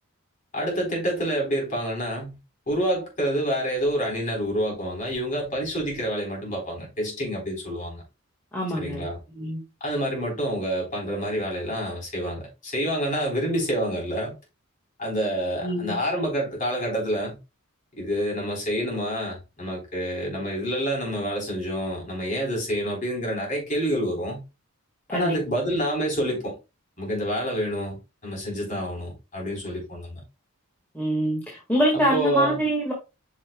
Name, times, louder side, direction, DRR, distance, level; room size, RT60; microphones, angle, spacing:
voice 1, 0.5-2.4 2.7-8.0 8.8-9.2 9.8-14.3 15.0-17.4 17.9-24.4 25.1-26.6 27.0-30.2 31.9-32.6, equal, 35° left, 3.9 m, -28 dB
voice 2, 8.5-9.1 9.3-9.6 15.6-15.9 25.1-25.4 30.9-32.9, equal, 10° left, 1.7 m, -25 dB
8.9 x 5.6 x 2.2 m
head